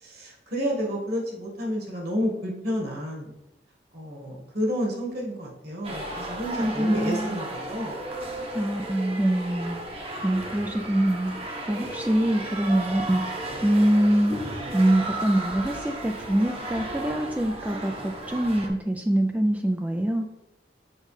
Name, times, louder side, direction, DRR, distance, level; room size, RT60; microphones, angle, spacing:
voice 1, 0.0-3.3 3.9-8.0, equal, 60° right, -1 dB, 1.6 m, -30 dB
sound 1, 5.8-18.7, right 1 dB, 30° right, 0.9 m, -35 dB
voice 2, 6.6-7.4 8.5-13.2 13.6-14.3 14.7-20.3, right 1 dB, 10° right, 3 dB, 0.3 m, -24 dB
6.4 x 5.1 x 3.2 m, 0.97 s
head